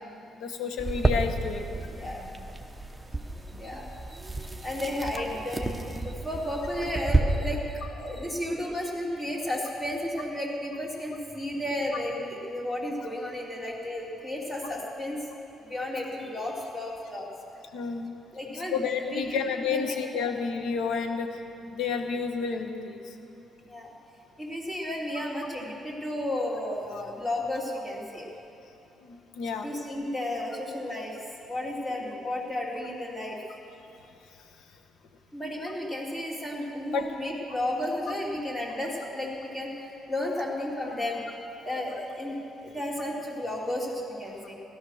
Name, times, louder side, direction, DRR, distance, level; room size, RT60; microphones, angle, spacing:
voice 1, 0.4-1.7 17.7-18.1 18.7-21.3 21.7-23.0 29.0-29.7 36.9-37.0, left 5 dB, 80° left, 5 dB, 1.4 m, -30 dB
sound 1, 0.8-7.2, right 2 dB, 10° right, 1.0 m, -31 dB
voice 2, 1.9-2.2 3.6-4.2 4.6-15.2 15.7-17.3 18.3-18.8 19.1-19.4 19.7-19.8 23.7-23.9 24.4-28.3 29.6-31.2 31.5-33.4 35.3-41.2 41.6-44.5, left 1 dB, 15° left, -3 dB, 3.3 m, -33 dB
16.5 x 13.0 x 6.4 m, 2.9 s
cardioid pair, 110°, 0 cm